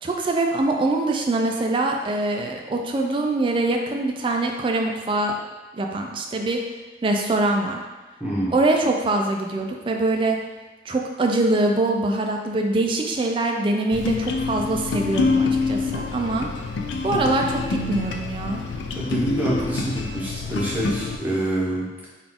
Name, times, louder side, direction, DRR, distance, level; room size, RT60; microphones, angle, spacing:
voice 1, 0.0-5.4 5.7-6.6 7.0-7.8 8.5-10.4 10.9-16.5 17.0-18.6, right 2 dB, 30° right, 2 dB, 0.3 m, -23 dB
voice 2, 8.2-8.5 19.0-22.1, right 1 dB, 10° right, -7 dB, 0.8 m, -26 dB
sound 1, 13.9-21.2, left 4 dB, 90° left, 0.4 m, -26 dB
3.9 x 2.4 x 3.5 m, 1.2 s
head